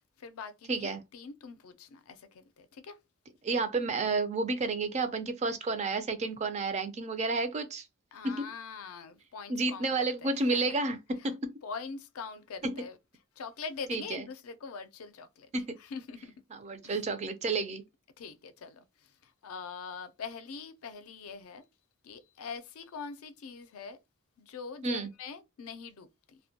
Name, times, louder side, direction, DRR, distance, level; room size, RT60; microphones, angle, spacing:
voice 1, 0.0-3.0 8.1-10.8 11.6-13.0 13.4-15.5 15.8-16.3 16.8-17.0 18.2-21.6 22.0-24.0 24.4-26.4, left 5 dB, 80° left, 0.4 m, -43 dB
voice 2, 0.7-1.0 3.4-7.9 8.2-8.5 9.5-11.4 12.6-12.8 13.9-14.3 15.5-15.8 16.5-17.8 24.8-25.1, right 3 dB, 30° right, 0.4 m, -31 dB
2.1 x 2.1 x 2.7 m
head